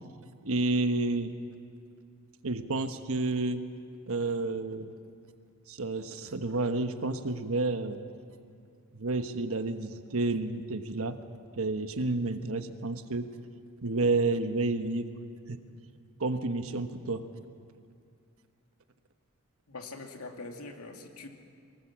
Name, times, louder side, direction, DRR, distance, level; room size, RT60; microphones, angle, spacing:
voice 1, 0.4-1.3 2.4-3.6 4.1-4.9 5.7-8.0 8.9-11.2 11.6-13.3 13.8-15.1 15.5-15.6 16.2-17.3, right 2 dB, 70° right, 8 dB, 1.2 m, -30 dB
voice 2, 19.7-21.3, left 3 dB, 85° left, 3 dB, 2.3 m, -43 dB
23.5 x 19.0 x 7.4 m, 2.3 s
head